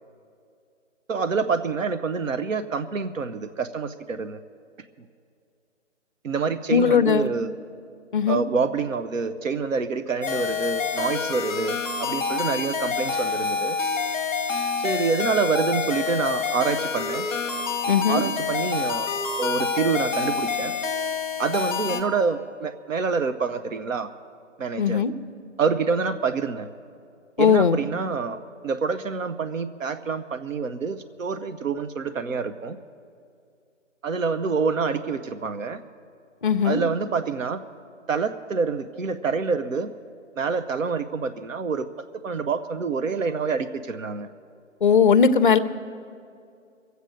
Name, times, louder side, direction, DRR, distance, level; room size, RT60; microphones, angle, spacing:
voice 1, 1.1-4.4 6.2-7.5 8.3-13.8 14.8-17.3 18.1-19.1 19.4-20.7 21.4-24.1 24.6-25.0 25.6-26.7 27.4-32.8 34.0-35.8 36.6-37.6 38.1-39.9 40.4-41.9 42.2-44.3, right 5 dB, 90° right, 10 dB, 0.8 m, -27 dB
voice 2, 6.7-7.3 8.1-8.4 17.9-18.2 24.8-25.1 27.4-27.8 36.4-36.8 44.8-45.6, left 6 dB, 40° left, 13 dB, 0.5 m, -18 dB
sound 1, 10.2-22.0, left 5 dB, ahead, 0.9 m, -27 dB
21.5 x 8.1 x 6.5 m, 2.4 s
hypercardioid pair, 160°, 38 cm